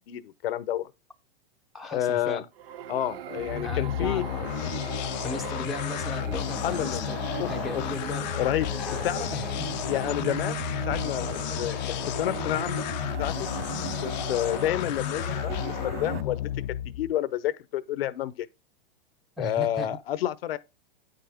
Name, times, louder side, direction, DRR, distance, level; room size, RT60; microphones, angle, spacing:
voice 1, 0.1-0.9 1.8-2.4 2.9-4.3 6.6-7.1 7.4-7.8 8.4-8.8 9.0-9.3 9.9-10.6 10.9-11.3 11.6-12.9 13.2-13.5 14.0-16.4 17.0-18.5 19.4-20.6, left 12 dB, 80° left, 0.8 m, -29 dB
voice 2, 1.7-2.4 3.6-4.3 5.2-8.3 8.8-9.8 19.4-19.9, equal, ahead, 0.6 m, -37 dB
sound 1, 2.6-16.2, right 10 dB, 80° right, 0.8 m, -38 dB
sound 2, 3.4-17.1, left 13 dB, 50° left, 0.5 m, -32 dB
9.4 x 5.8 x 3.4 m
hypercardioid pair, 135°, 29 cm